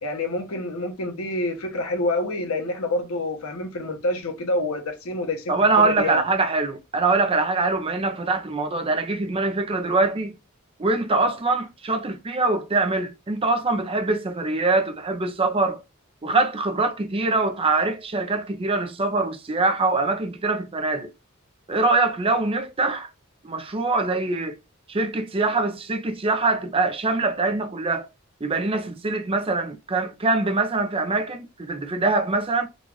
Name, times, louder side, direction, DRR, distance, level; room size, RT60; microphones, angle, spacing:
voice 1, 0.0-6.2, left 2 dB, 80° left, 0.9 m, -27 dB
voice 2, 5.5-10.4 10.8-15.8 16.2-21.1 21.7-23.1 23.4-24.6 24.9-28.1 28.4-32.7, right 3 dB, 25° right, 0.5 m, -23 dB
3.9 x 2.4 x 3.1 m
head